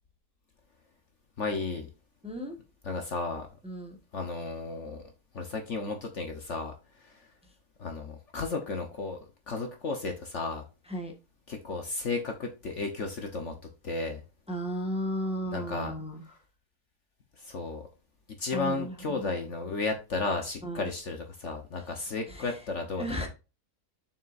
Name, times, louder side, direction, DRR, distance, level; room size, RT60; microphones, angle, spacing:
voice 1, 1.4-1.9 2.8-3.5 4.1-5.0 5.3-6.7 7.0-7.2 7.8-9.2 9.5-10.6 11.5-13.5 13.8-14.2 15.5-15.9 17.4-17.8 18.4-23.0, left 3 dB, 50° left, 1.3 m, -33 dB
voice 2, 2.2-2.6 3.6-3.9 10.9-11.1 14.5-16.2 18.5-19.3 20.6-20.9 22.0-22.6 23.0-23.3, equal, 5° right, 1.3 m, -35 dB
7.1 x 6.3 x 2.6 m
omnidirectional pair, 1.7 m